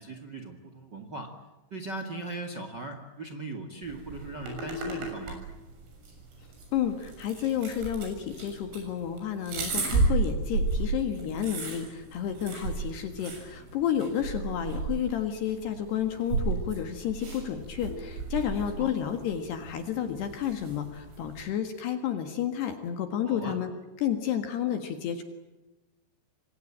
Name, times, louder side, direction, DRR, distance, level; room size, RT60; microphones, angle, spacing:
voice 1, 0.0-1.3 1.7-5.4 18.8-18.9 23.2-23.6, right 2 dB, 50° right, 7 dB, 1.3 m, -39 dB
sound 1, 3.8-21.4, right 3 dB, 80° right, 9.5 m, -34 dB
voice 2, 6.7-23.7 24.0-25.2, left 9 dB, 65° left, 7 dB, 3.5 m, -31 dB
27.0 x 24.5 x 8.8 m, 1.1 s
omnidirectional pair, 5.7 m